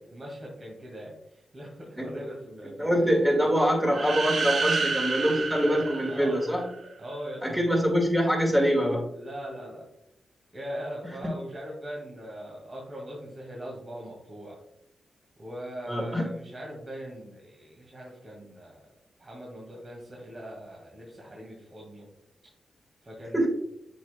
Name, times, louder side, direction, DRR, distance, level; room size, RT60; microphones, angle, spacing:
voice 1, 0.1-3.2 6.1-6.4 7.0-7.4 9.1-9.8 10.5-14.6 15.4-18.9 19.2-22.1 23.0-23.5, equal, 40° right, -3 dB, 2.1 m, -41 dB
voice 2, 2.8-6.7 7.4-9.1 11.0-11.2 15.9-16.2 23.3-23.5, equal, 10° right, -1 dB, 1.9 m, -24 dB
sound 1, 3.9-6.8, right 4 dB, 65° right, 0.9 m, -29 dB
7.7 x 5.3 x 2.3 m, 0.80 s
cardioid pair, 50°, 0 cm